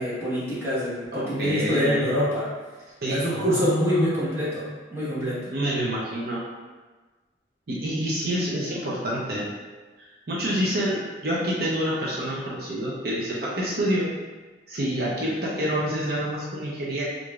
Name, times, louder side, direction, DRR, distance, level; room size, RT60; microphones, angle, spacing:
voice 1, 0.0-2.5 3.1-4.6 4.9-5.5, equal, 15° right, -10 dB, 1.1 m, -25 dB
voice 2, 1.1-2.1 3.0-4.2 5.5-6.5 7.7-9.5 10.3-14.1 14.7-17.0, equal, 60° right, -6 dB, 0.6 m, -27 dB
4.7 x 2.5 x 2.3 m, 1.3 s
head